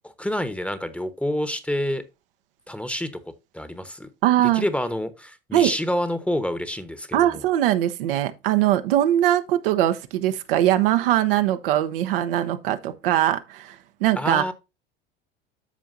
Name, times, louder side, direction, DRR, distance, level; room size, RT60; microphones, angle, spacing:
voice 1, 0.0-2.0 2.7-4.1 4.5-7.4 14.2-14.5, left 1 dB, 5° left, 1.1 m, -28 dB
voice 2, 4.2-4.6 5.5-5.7 7.1-14.5, right 13 dB, 70° right, 0.9 m, -21 dB
13.5 x 4.6 x 2.6 m
hypercardioid pair, 80°, 29 cm